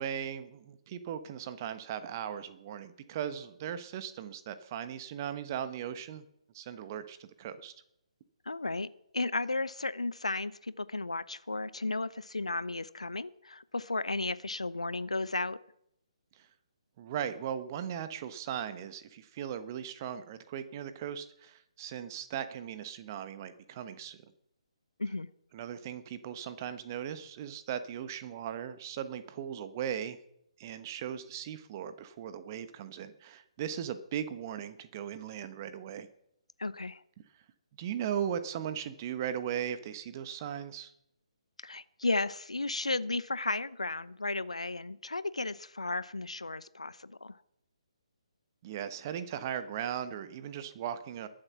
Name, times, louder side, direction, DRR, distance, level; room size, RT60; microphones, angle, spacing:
voice 1, 0.0-6.2 6.5-7.7 17.0-24.2 25.5-30.2 30.6-36.1 37.8-40.9 48.6-51.3, right 9 dB, 30° right, 11 dB, 1.1 m, -38 dB
voice 2, 8.5-8.9 9.1-15.6 25.0-25.3 36.6-37.0 41.6-47.3, left 3 dB, 75° left, 17 dB, 0.7 m, -34 dB
21.5 x 7.7 x 5.8 m, 0.78 s
figure-of-eight pair, 140°, 3 cm